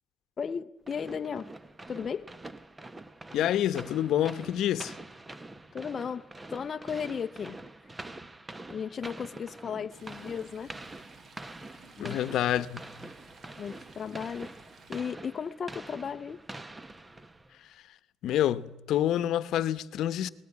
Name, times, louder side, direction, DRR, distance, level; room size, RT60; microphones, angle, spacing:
voice 1, 0.4-1.5 1.9-2.3 5.3-5.4 5.7-7.6 8.7-10.7 12.0-12.2 13.6-14.5 14.9-16.4, left 6 dB, 40° left, 0.7 m, -35 dB
sound 1, 0.9-17.6, right 2 dB, 15° right, 1.1 m, -46 dB
voice 2, 3.3-4.9 12.0-12.8 18.2-20.3, left 11 dB, 70° left, 1.0 m, -27 dB
Stream, 9.9-15.0, right 3 dB, 45° right, 2.9 m, -55 dB
20.0 x 20.0 x 9.7 m
cardioid pair, 120°, 0 cm